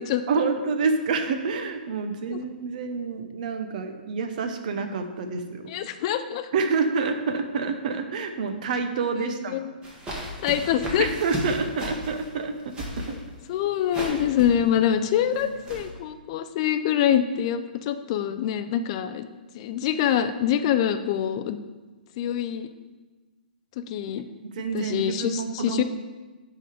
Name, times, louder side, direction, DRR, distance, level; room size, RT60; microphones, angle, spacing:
voice 1, 0.3-5.6 6.5-9.6 11.0-13.1 14.1-14.2 15.4-15.5 24.6-25.8, right 4 dB, 50° right, 7 dB, 0.8 m, -28 dB
voice 2, 5.7-6.5 9.2-9.7 10.4-11.1 13.1-13.2 13.5-19.3 19.5-21.6 22.2-22.7 23.9-24.2 24.7-25.8, left 10 dB, 35° left, 10 dB, 0.4 m, -25 dB
sound 1, 9.8-15.8, equal, 15° right, 1.4 m, -36 dB
10.0 x 3.8 x 4.9 m, 1.2 s
hypercardioid pair, 155°, 5 cm